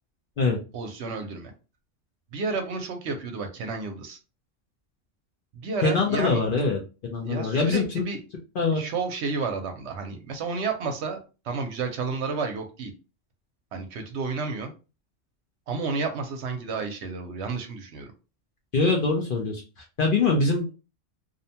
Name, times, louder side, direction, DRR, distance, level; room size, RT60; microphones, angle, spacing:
voice 1, 0.7-1.5 2.3-4.2 5.5-6.4 7.2-8.2 8.7-11.2 11.4-12.9 13.7-14.7 15.7-18.1, right 4 dB, 65° right, 5 dB, 0.8 m, -31 dB
voice 2, 5.8-6.8 7.1-8.0 8.6-8.8 18.7-20.7, left 4 dB, 60° left, 0 dB, 0.6 m, -23 dB
2.6 x 2.1 x 2.7 m, 0.31 s
omnidirectional pair, 1.3 m